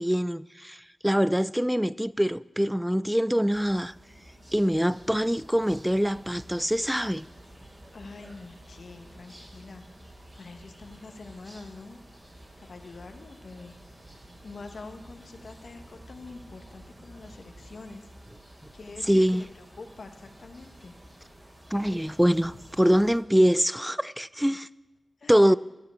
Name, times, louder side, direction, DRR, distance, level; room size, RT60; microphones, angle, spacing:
voice 1, 0.0-3.9 4.5-7.3 19.0-19.5 21.7-24.7 25.3-25.6, equal, 5° right, 0.3 m, -24 dB
sound 1, 3.5-23.2, right 1 dB, 20° right, 2.8 m, -50 dB
voice 2, 7.9-9.8 10.4-12.0 12.6-13.8 14.4-18.1 18.7-20.9 25.2-25.4, left 3 dB, 65° left, 1.3 m, -45 dB
12.0 x 7.8 x 8.3 m
cardioid pair, 60°, 0 cm